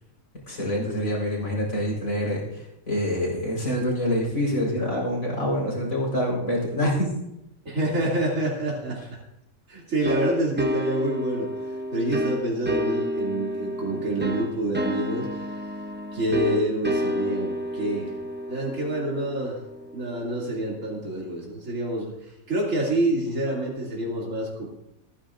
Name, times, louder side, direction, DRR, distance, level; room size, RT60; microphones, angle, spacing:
voice 1, 0.5-2.4 2.9-7.1, equal, 65° left, -3 dB, 4.8 m, -26 dB
voice 2, 7.6-9.0 9.7-11.5 11.9-15.5 16.1-18.1 18.5-19.6 19.9-24.7, right 1 dB, 60° right, -4 dB, 3.1 m, -27 dB
sound 1, 10.0-20.5, equal, 10° right, 0.5 m, -30 dB
27.0 x 10.5 x 2.5 m, 0.85 s
omnidirectional pair, 1.5 m